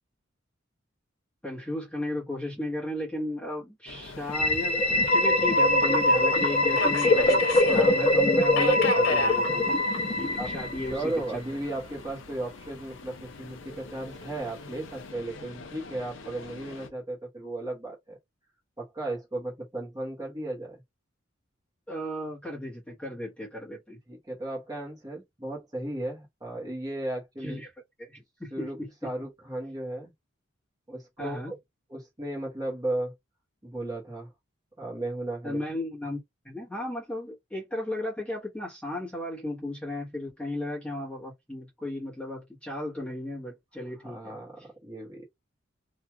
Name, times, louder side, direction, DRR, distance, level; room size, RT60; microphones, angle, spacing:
voice 1, 1.4-9.8 10.2-11.4 21.9-24.0 27.4-27.7 28.0-28.9 31.2-31.5 35.4-44.4, left 1 dB, 5° left, 1.1 m, -35 dB
Subway metro underground, 3.9-16.9, left 4 dB, 70° left, 0.6 m, -38 dB
sound 1, 4.3-11.1, left 1 dB, 30° left, 0.7 m, -23 dB
voice 2, 10.8-18.2 18.8-20.8 24.1-27.6 28.5-30.1 30.9-31.5 31.9-33.1 33.6-34.3 34.8-35.6 44.0-45.2, right 1 dB, 20° right, 1.0 m, -35 dB
2.9 x 2.4 x 2.3 m
head